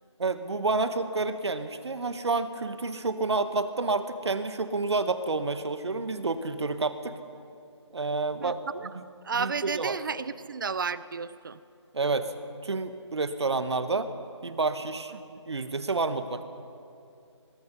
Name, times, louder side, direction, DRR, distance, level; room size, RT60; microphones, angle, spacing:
voice 1, 0.2-7.2 7.9-8.6 8.9-9.0 9.3-9.9 11.9-12.3 12.6-14.1 14.4-15.1 15.5-16.4, right 3 dB, 60° right, 10 dB, 1.5 m, -29 dB
voice 2, 8.4-8.9 9.2-11.6 15.1-15.4, right 5 dB, 45° right, 17 dB, 0.7 m, -33 dB
24.0 x 22.0 x 5.5 m, 2.6 s
figure-of-eight pair, 160°, 15 cm